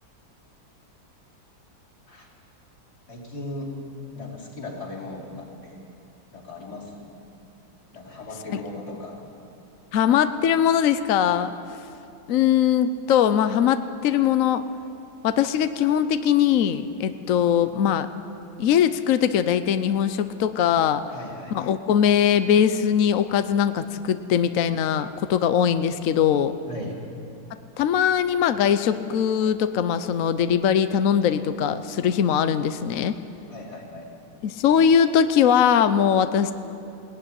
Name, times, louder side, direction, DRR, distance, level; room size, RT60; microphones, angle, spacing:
voice 1, 3.1-3.8 4.1-5.8 6.3-7.1 7.9-9.2 21.1-21.6 26.7-27.0 33.5-34.3, left 2 dB, 50° left, -2 dB, 5.0 m, -37 dB
voice 2, 9.9-11.5 12.3-14.6 15.2-18.1 18.6-21.0 21.5-26.5 27.8-33.1 34.4-36.5, left 8 dB, 65° left, 11 dB, 0.8 m, -21 dB
21.0 x 18.0 x 9.9 m, 2.7 s
omnidirectional pair, 2.2 m